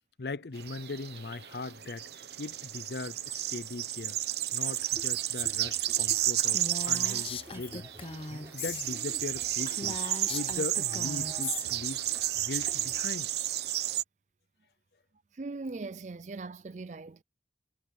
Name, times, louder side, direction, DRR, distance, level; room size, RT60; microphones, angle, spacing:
voice 1, 0.2-4.2 4.5-7.9 8.3-10.0 10.3-12.0 12.4-13.3, left 3 dB, 65° left, 0.6 m, -39 dB
sound 1, 0.6-14.0, right 12 dB, 70° right, 1.0 m, -32 dB
sound 2, 4.7-13.0, right 1 dB, 15° right, 4.4 m, -51 dB
Female speech woman speaking, 6.4-8.9 9.2-9.3 9.6-11.6, left 4 dB, 30° left, 0.9 m, -39 dB
voice 2, 15.3-17.2, right 3 dB, 40° right, 0.4 m, -40 dB
head